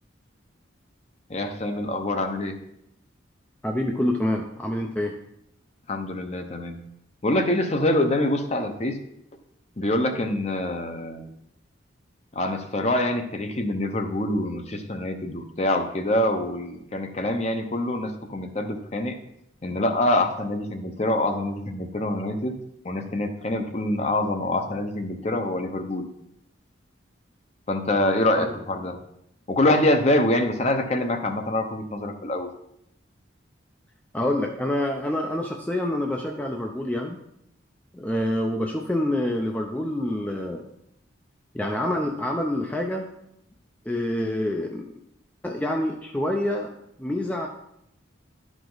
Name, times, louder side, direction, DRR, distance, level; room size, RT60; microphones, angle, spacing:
voice 1, 1.3-2.6 5.9-6.8 7.2-9.0 9.8-11.3 12.3-19.2 19.6-22.6 22.8-26.1 27.7-29.0 29.5-32.5, left 1 dB, 35° left, 5 dB, 0.8 m, -25 dB
voice 2, 3.6-5.2 28.4-28.5 34.1-37.2 37.9-40.6 41.5-43.1 43.9-44.9 45.4-46.7 47.0-47.5, left 1 dB, 5° left, 1 dB, 0.5 m, -27 dB
11.5 x 5.0 x 3.9 m, 0.78 s
head